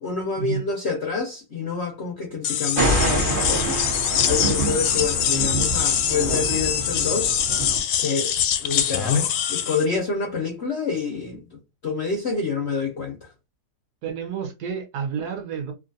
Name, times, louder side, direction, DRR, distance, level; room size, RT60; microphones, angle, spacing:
voice 1, 0.0-7.7 8.0-8.3 8.6-13.3, left 5 dB, 65° left, 0.6 m, -28 dB
sound 1, 2.4-9.9, left 9 dB, 85° left, 1.3 m, -24 dB
Thunder, 2.8-7.8, right 2 dB, 40° right, 0.8 m, -26 dB
voice 2, 14.0-15.7, right 7 dB, 70° right, 1.2 m, -30 dB
3.0 x 2.5 x 2.6 m
omnidirectional pair, 1.9 m